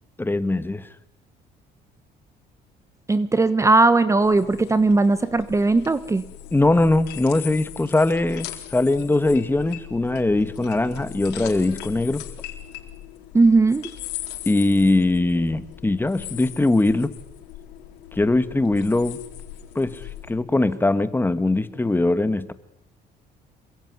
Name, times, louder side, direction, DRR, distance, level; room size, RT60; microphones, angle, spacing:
voice 1, 0.2-0.9 6.5-12.2 14.4-17.1 18.1-19.2 19.7-22.5, left 2 dB, 10° left, 12 dB, 1.7 m, -21 dB
voice 2, 3.1-6.2 13.3-13.9, right 3 dB, 15° right, 13 dB, 1.3 m, -18 dB
sound 1, 4.2-20.3, left 12 dB, 90° left, 4.4 m, -39 dB
27.5 x 22.0 x 9.7 m, 0.82 s
cardioid pair, 110°, 17 cm